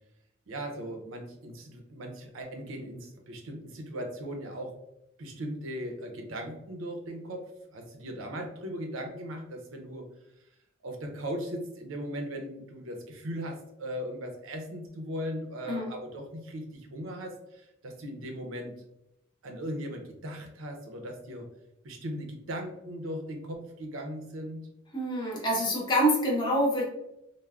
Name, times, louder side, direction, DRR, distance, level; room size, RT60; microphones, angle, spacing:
voice 1, 0.5-4.7 5.2-10.0 10.8-18.8 19.4-21.5 21.8-24.7, equal, 80° right, 3 dB, 0.5 m, -38 dB
voice 2, 24.9-26.8, equal, 20° left, -3 dB, 0.7 m, -26 dB
3.3 x 2.1 x 2.3 m, 0.85 s
head